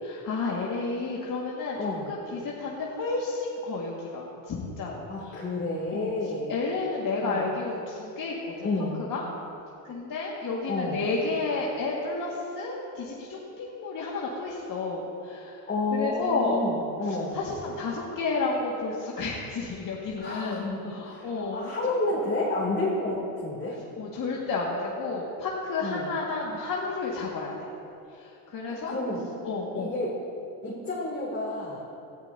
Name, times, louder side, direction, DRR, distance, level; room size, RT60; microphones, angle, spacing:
voice 1, 0.0-1.8 2.1-5.4 5.9-6.1 6.5-8.7 9.1-9.2 9.8-15.6 15.9-16.6 17.0-21.7 22.1-22.2 23.7-27.7 28.1-28.9 29.4-29.9, left 3 dB, 45° left, -4 dB, 1.9 m, -31 dB
voice 2, 1.8-2.1 5.1-6.5 7.2-7.5 8.6-9.0 10.7-11.1 15.7-17.4 20.2-23.8 25.8-26.1 28.6-29.2 29.7-30.1 30.6-31.8, left 2 dB, 25° left, -6 dB, 2.9 m, -30 dB
18.0 x 12.0 x 2.8 m, 2.8 s
supercardioid pair, 100°, 47 cm